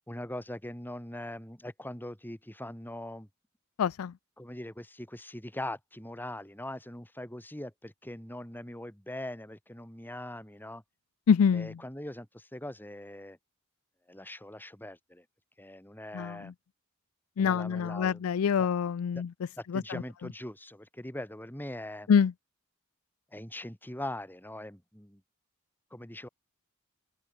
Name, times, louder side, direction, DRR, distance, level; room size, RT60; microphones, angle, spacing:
voice 1, 0.1-3.3 4.4-10.8 11.5-13.4 14.1-15.2 15.6-16.5 17.4-18.3 18.6-18.7 19.1-19.2 19.6-22.1 23.3-25.2 25.9-26.3, left 1 dB, 10° left, 4.5 m, -41 dB
voice 2, 3.8-4.1 11.3-11.7 16.1-16.4 17.4-19.3 19.7-19.8 22.1-22.3, left 7 dB, 85° left, 0.4 m, -25 dB
open air
head